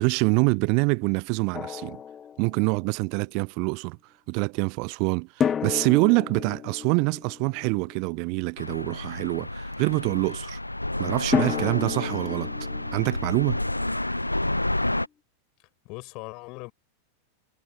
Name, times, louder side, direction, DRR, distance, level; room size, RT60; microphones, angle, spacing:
voice 1, 0.0-2.0 2.4-4.0 4.3-10.6 11.0-12.5 12.9-13.6, right 35 dB, 45° right, 0.4 m, -25 dB
Drum, 1.5-2.9 5.4-8.4 11.3-14.2, left 8 dB, 25° left, 0.5 m, -32 dB
sound 1, 8.6-15.1, left 1 dB, 85° left, 0.8 m, -30 dB
voice 2, 15.6-16.7, left 26 dB, 40° left, 7.2 m, -40 dB
figure-of-eight pair, 90°, 0 cm